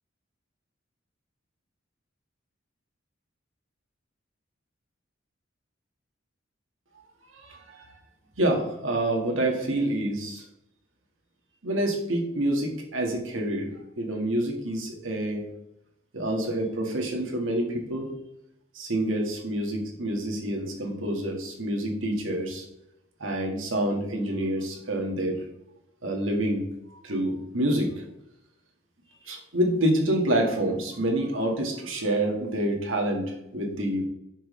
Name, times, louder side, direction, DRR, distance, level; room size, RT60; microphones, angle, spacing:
voice 1, 7.3-7.9 8.4-10.4 11.6-15.4 16.1-18.1 18.7-22.6 23.2-25.4 26.0-26.6 27.0-28.0 29.2-34.0, right 1 dB, 80° right, 1 dB, 1.7 m, -27 dB
9.0 x 6.2 x 3.2 m, 0.85 s
head